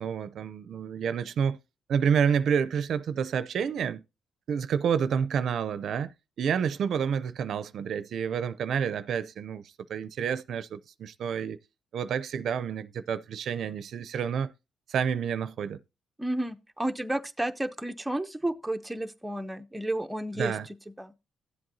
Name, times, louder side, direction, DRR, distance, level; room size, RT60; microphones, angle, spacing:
voice 1, 0.0-1.6 1.9-4.0 4.5-9.6 9.9-11.6 11.9-14.5 14.9-15.8 20.4-20.7, right 7 dB, 65° right, 0.5 m, -29 dB
voice 2, 16.2-20.5 21.0-21.1, right 1 dB, 5° right, 0.6 m, -31 dB
13.0 x 7.8 x 2.7 m
cardioid pair, 90°, 0 cm